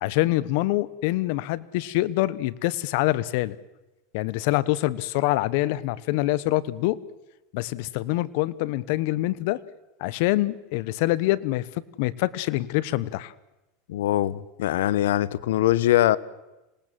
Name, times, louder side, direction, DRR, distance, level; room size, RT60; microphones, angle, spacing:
voice 1, 0.0-3.6 4.1-7.0 7.5-9.6 10.0-11.7 12.0-13.3, left 17 dB, 65° left, 19 dB, 1.1 m, -25 dB
voice 2, 13.9-16.2, left 13 dB, 85° left, 19 dB, 1.0 m, -22 dB
26.0 x 19.0 x 7.7 m, 1.0 s
supercardioid pair, 115°, 0 cm